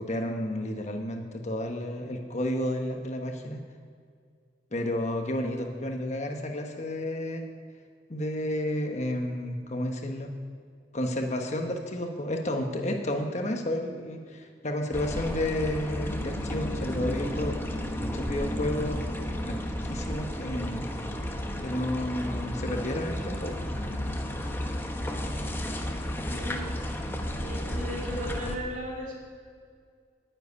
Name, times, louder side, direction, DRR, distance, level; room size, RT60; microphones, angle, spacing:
voice 1, 0.0-3.6 4.7-7.4 8.1-10.3 10.9-17.6 17.9-19.1 19.4-20.8 21.6-23.6, left 1 dB, 40° left, 3 dB, 1.1 m, -31 dB
sound 1, 14.9-28.6, equal, 15° left, 1.0 m, -33 dB
voice 2, 26.3-26.6 27.4-29.1, equal, 50° right, -4 dB, 3.5 m, -36 dB
9.7 x 7.8 x 9.5 m, 2.1 s
head